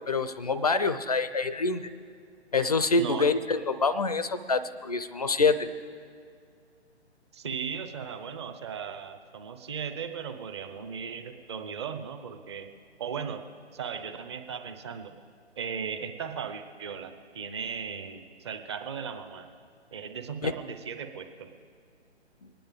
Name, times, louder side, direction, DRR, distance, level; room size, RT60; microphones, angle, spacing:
voice 1, 0.1-1.8 2.5-5.7 20.4-20.5, left 4 dB, 35° left, 13 dB, 0.4 m, -26 dB
voice 2, 7.3-12.7 13.0-13.4 13.7-15.1 15.6-19.5 19.9-21.5, right 6 dB, 25° right, 7 dB, 0.7 m, -37 dB
24.5 x 10.0 x 3.6 m, 2.2 s
figure-of-eight pair, 140°, 34 cm